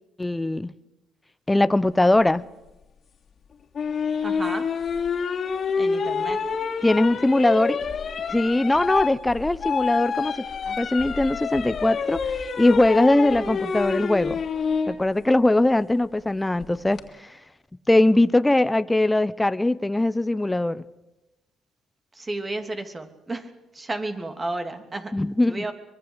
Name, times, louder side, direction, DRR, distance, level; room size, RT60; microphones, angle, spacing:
voice 1, 0.2-0.7 1.5-2.4 6.8-7.8 8.3-10.4 10.8-14.4 14.9-17.4 17.9-20.8 25.1-25.7, left 2 dB, 15° left, 0.8 m, -21 dB
sound 1, 3.7-14.9 16.6-17.0, left 5 dB, 50° left, 3.0 m, -27 dB
voice 2, 4.2-4.8 5.8-6.4 10.6-10.8 22.1-25.2 25.5-25.7, right 2 dB, 25° right, 3.1 m, -32 dB
24.0 x 21.5 x 8.2 m
supercardioid pair, 70°, 0 cm